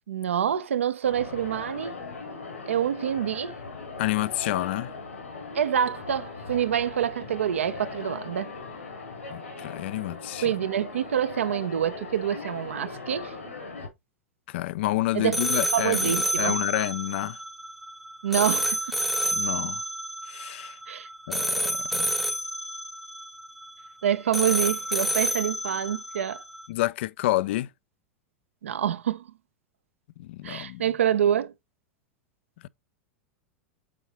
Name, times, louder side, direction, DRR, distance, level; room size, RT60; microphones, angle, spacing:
voice 1, 0.1-2.0 2.7-3.6 5.5-8.5 10.4-13.4 15.1-15.4 15.7-16.5 18.2-19.0 20.9-21.1 24.0-26.4 28.6-29.3 30.4-31.5, right 9 dB, 75° right, 0.7 m, -26 dB
sound 1, 1.0-13.9, left 3 dB, 85° left, 3.7 m, -39 dB
voice 2, 4.0-4.9 9.3-10.5 14.5-17.4 19.3-19.8 20.3-20.8 21.3-22.2 26.7-27.7 30.2-30.8, left 17 dB, 60° left, 0.4 m, -29 dB
sound 2, 15.3-26.7, right 1 dB, ahead, 0.7 m, -29 dB
8.5 x 4.7 x 3.0 m
hypercardioid pair, 95°, 7 cm